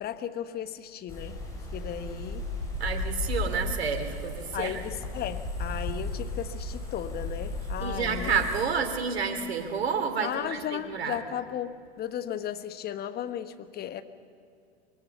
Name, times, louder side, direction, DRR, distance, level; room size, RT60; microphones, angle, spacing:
voice 1, 0.0-1.4 1.7-2.5 4.5-8.4 10.2-14.0, left 10 dB, 30° left, 10 dB, 1.3 m, -35 dB
sound 1, 1.1-8.6, left 2 dB, 10° left, 7.7 m, -35 dB
voice 2, 2.8-4.8 7.8-11.2, right 6 dB, 70° right, 5 dB, 3.0 m, -30 dB
24.5 x 23.0 x 7.1 m, 2.4 s
figure-of-eight pair, 90°, 32 cm